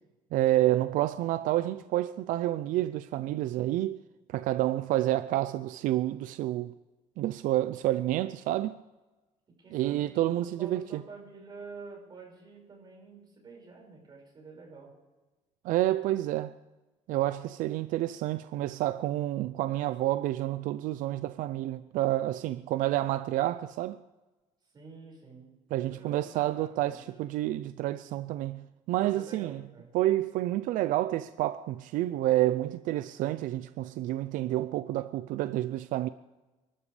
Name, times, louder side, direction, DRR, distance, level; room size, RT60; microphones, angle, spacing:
voice 1, 0.3-4.0 4.3-6.7 7.2-8.7 9.7-11.0 15.6-16.5 17.1-24.0 25.7-29.6 29.9-36.1, right 15 dB, 75° right, 0.5 m, -29 dB
voice 2, 9.5-10.3 10.6-15.0 24.7-25.6 25.8-27.1 29.0-29.9, right 4 dB, 30° right, 5.4 m, -48 dB
28.5 x 12.5 x 3.3 m
cardioid pair, 140°, 14 cm